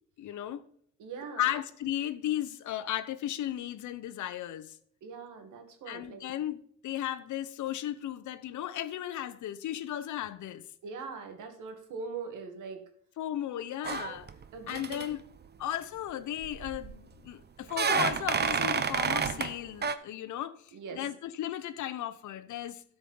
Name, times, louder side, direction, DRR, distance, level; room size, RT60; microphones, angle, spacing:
voice 1, 0.2-0.6 1.4-4.8 5.9-10.6 13.2-14.3 14.7-15.2 15.6-22.8, left 12 dB, 75° left, 0.9 m, -35 dB
voice 2, 1.0-1.6 5.0-6.3 10.8-12.8 14.5-15.0 20.7-21.0, right 5 dB, 85° right, 2.1 m, -41 dB
sound 1, 13.8-14.4 14.7-15.1 16.4-17.0 17.7-19.5 19.8-20.0, right 6 dB, 35° right, 0.8 m, -30 dB
12.5 x 5.1 x 5.4 m
cardioid pair, 90°, 30 cm